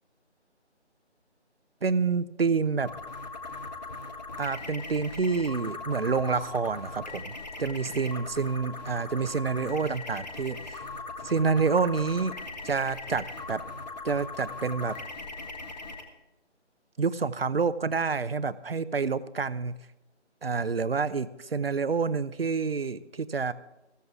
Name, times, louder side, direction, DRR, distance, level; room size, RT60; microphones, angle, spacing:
voice 1, 1.8-2.9 4.4-10.9 11.2-12.4 12.6-13.6 14.0-15.0 17.0-19.7 20.4-23.5, right 5 dB, 55° right, 15 dB, 0.7 m, -28 dB
sound 1, 2.8-16.0, left 3 dB, 35° left, 1.6 m, -40 dB
15.5 x 14.0 x 3.6 m, 1.0 s
figure-of-eight pair, 165°, 35 cm